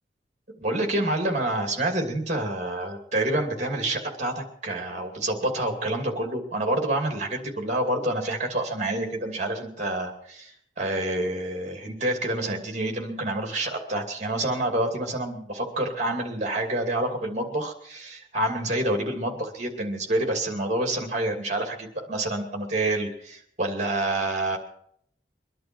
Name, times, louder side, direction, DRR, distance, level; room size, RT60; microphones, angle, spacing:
voice 1, 0.6-24.6, right 1 dB, 40° right, 3 dB, 2.7 m, -28 dB
23.0 x 11.0 x 4.6 m, 0.68 s
head